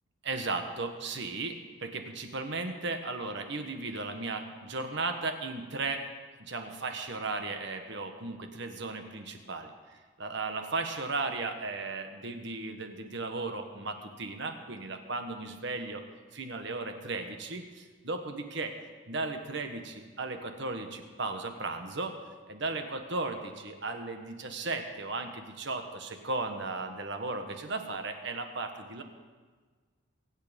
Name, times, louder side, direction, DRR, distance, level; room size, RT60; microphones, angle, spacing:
voice 1, 0.2-6.0 6.4-16.0 16.3-18.7 19.1-22.2 22.5-29.0, right 3 dB, 60° right, 5 dB, 1.4 m, -36 dB
23.5 x 8.7 x 5.3 m, 1.5 s
head